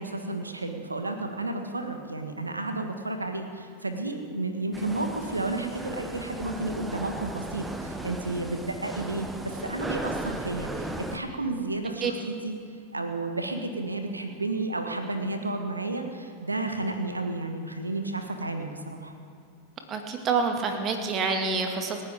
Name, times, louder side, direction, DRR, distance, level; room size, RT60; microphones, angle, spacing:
voice 1, 0.0-12.6 12.9-19.1, right 2 dB, 80° right, 6 dB, 1.4 m, -32 dB
sound 1, 4.7-11.2, right 1 dB, 10° right, 0.9 m, -36 dB
voice 2, 19.9-22.0, right 4 dB, 30° right, 4 dB, 2.0 m, -27 dB
27.0 x 10.5 x 3.6 m, 2.4 s
figure-of-eight pair, 90°, 0 cm